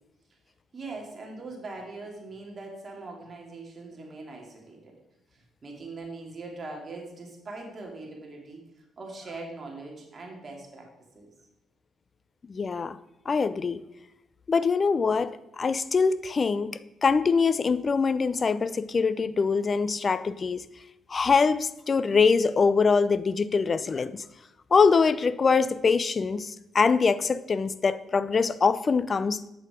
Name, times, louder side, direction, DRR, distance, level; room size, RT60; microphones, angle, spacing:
voice 1, 0.7-5.0 5.3-10.9 11.1-11.3, right 3 dB, 40° right, 0 dB, 2.4 m, -41 dB
voice 2, 12.5-13.0 13.3-13.8 14.5-20.6 21.1-24.2 24.7-29.5, left 5 dB, 35° left, 16 dB, 0.4 m, -24 dB
8.0 x 6.6 x 5.0 m, 0.89 s
cardioid pair, 90°, 0 cm